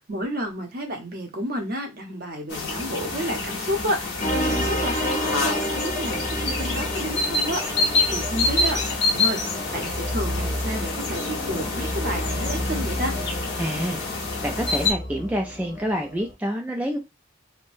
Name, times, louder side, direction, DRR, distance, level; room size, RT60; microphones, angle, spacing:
voice 1, 0.1-7.8 8.1-8.8 9.1-9.4 9.7-13.1, equal, 50° right, 0.8 m, -30 dB
sound 1, 2.5-14.9, left 3 dB, 60° left, 1.0 m, -27 dB
sound 2, 4.2-16.3, equal, 40° left, 1.0 m, -30 dB
voice 2, 13.6-14.0 14.4-17.0, equal, 10° right, 0.4 m, -27 dB
3.2 x 2.2 x 2.5 m
head